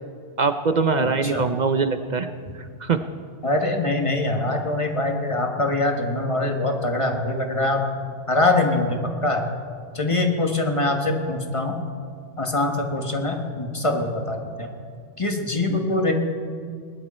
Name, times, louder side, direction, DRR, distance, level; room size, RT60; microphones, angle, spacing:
voice 1, 0.4-2.3 2.8-3.0, right 4 dB, 50° right, 9 dB, 0.6 m, -22 dB
voice 2, 1.0-1.4 2.5-2.6 3.4-7.8 8.3-9.4 9.9-11.8 12.4-14.7 15.2-16.1, left 2 dB, 25° left, 3 dB, 1.4 m, -23 dB
20.5 x 11.0 x 4.3 m, 2.2 s
omnidirectional pair, 1.2 m